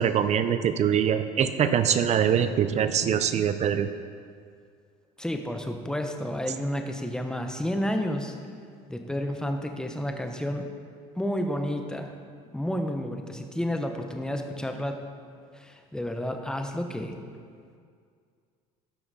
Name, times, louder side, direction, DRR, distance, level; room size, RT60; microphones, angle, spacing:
voice 1, 0.0-3.9, right 8 dB, 45° right, 10 dB, 0.5 m, -23 dB
voice 2, 5.2-8.3 8.9-10.6 11.1-12.1 12.5-14.9 15.5-17.2, equal, 5° left, 4 dB, 0.9 m, -30 dB
12.5 x 5.8 x 4.1 m, 2.2 s
supercardioid pair, 95°, 16 cm